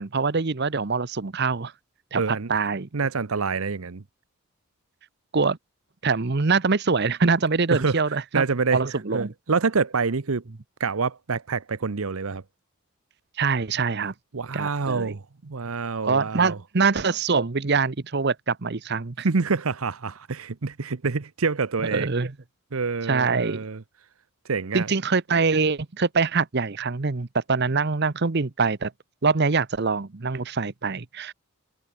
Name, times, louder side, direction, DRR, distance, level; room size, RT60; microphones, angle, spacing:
voice 1, 0.0-1.7 2.1-2.9 5.3-5.6 6.0-8.4 8.7-9.3 13.4-14.1 14.5-15.1 16.0-19.3 21.8-22.3 23.1-23.6 24.7-28.9 29.2-31.3, right 4 dB, 50° right, 0.9 m, -24 dB
voice 2, 2.2-2.5 2.9-4.0 7.7-8.0 8.3-8.8 9.1-10.4 10.8-12.4 14.3-16.6 19.2-22.1 22.7-23.8 24.5-24.9, right 4 dB, 75° right, 0.8 m, -26 dB
head